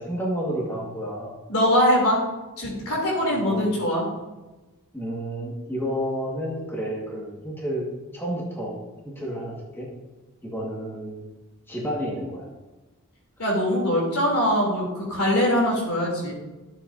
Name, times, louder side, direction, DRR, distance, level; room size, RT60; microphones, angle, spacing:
voice 1, 0.0-1.3 3.3-3.7 4.9-7.9 8.1-8.8 9.0-9.9 10.4-11.2 11.7-12.5, equal, 10° left, -4 dB, 1.8 m, -30 dB
voice 2, 1.5-2.2 2.6-4.1 13.4-16.3, equal, 80° left, -3 dB, 3.1 m, -22 dB
12.0 x 7.6 x 2.7 m, 1.1 s
head